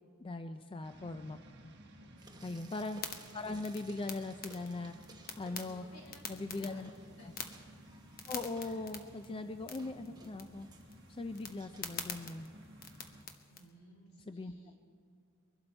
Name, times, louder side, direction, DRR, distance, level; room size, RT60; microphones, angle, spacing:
voice 1, 0.2-1.4 1.6-1.7 2.4-3.0 3.3-4.9 5.4-5.9 6.3-6.9 7.2-7.3 8.3-10.7 11.1-12.5 14.3-14.5, left 2 dB, 25° left, 8 dB, 0.4 m, -40 dB
sound 1, 0.8-13.2, equal, 55° right, 1.2 m, -56 dB
voice 2, 2.0-2.6 5.7-6.2 6.5-7.3 13.5-14.8, equal, 70° left, 0 dB, 3.2 m, -59 dB
Frying (food), 2.2-6.2 6.5-12.5, right 3 dB, 20° right, 1.0 m, -60 dB
sound 2, 2.9-13.7, left 6 dB, 45° left, 1.1 m, -48 dB
23.0 x 12.0 x 4.4 m, 2.4 s
head